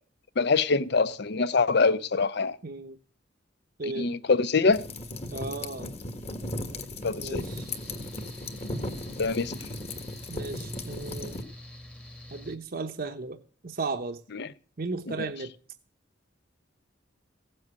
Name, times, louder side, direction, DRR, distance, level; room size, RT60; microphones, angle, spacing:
voice 1, 0.4-2.6 4.0-4.8 7.0-7.4 9.2-9.5 14.3-14.5 15.1-15.2, left 4 dB, 60° left, 0.7 m, -24 dB
voice 2, 2.6-3.0 3.8-4.1 5.3-5.9 7.2-7.7 10.3-11.4 12.3-13.4 13.6-14.2 14.8-15.5, right 3 dB, 50° right, 0.9 m, -35 dB
sound 1, 4.7-11.4, left 1 dB, 35° left, 1.6 m, -36 dB
Mechanical fan, 7.3-12.6, left 1 dB, 5° left, 1.2 m, -46 dB
16.0 x 7.8 x 8.2 m
head